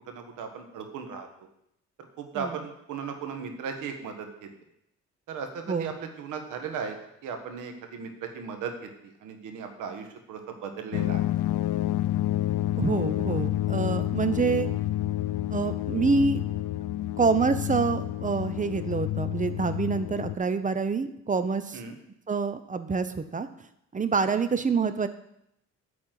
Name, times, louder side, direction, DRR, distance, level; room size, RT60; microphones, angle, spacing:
voice 1, 0.1-1.3 2.2-4.3 5.3-6.9 7.2-8.7 9.0-11.2 21.7-21.9 24.3-24.4, right 6 dB, 85° right, 5 dB, 1.5 m, -36 dB
sound 1, 10.9-20.4, left 14 dB, 90° left, 0.5 m, -29 dB
voice 2, 12.8-14.7 15.5-16.4 17.2-21.8 22.3-23.5 23.9-25.1, right 4 dB, 25° right, 11 dB, 0.8 m, -26 dB
9.6 x 4.3 x 7.6 m, 0.78 s
cardioid pair, 90°, 30 cm